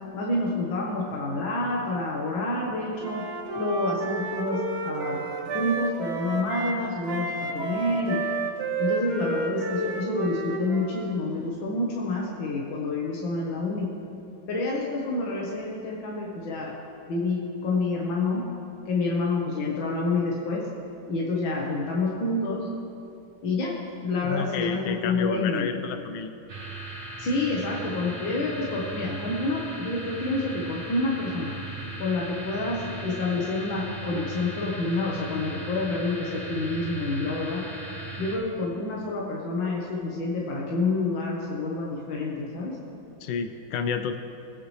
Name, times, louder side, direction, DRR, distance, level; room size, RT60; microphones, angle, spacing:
voice 1, 0.1-3.2 3.5-8.2 8.8-13.9 14.5-16.7 17.1-18.4 18.9-20.7 21.1-22.7 23.4-23.8 24.0-25.7 27.2-31.5 32.0-37.6 38.2-42.8, left 2 dB, 70° left, -3 dB, 2.1 m, -28 dB
Wind instrument woodwind instrument, 3.0-6.8 7.1-11.2, right 3 dB, 80° right, 2.2 m, -31 dB
voice 2, 24.2-26.3 43.2-44.2, left 6 dB, 85° left, 8 dB, 1.5 m, -30 dB
sound 1, 26.5-38.4, right 2 dB, 35° right, 2.2 m, -38 dB
23.0 x 9.3 x 3.3 m, 2.7 s
omnidirectional pair, 2.2 m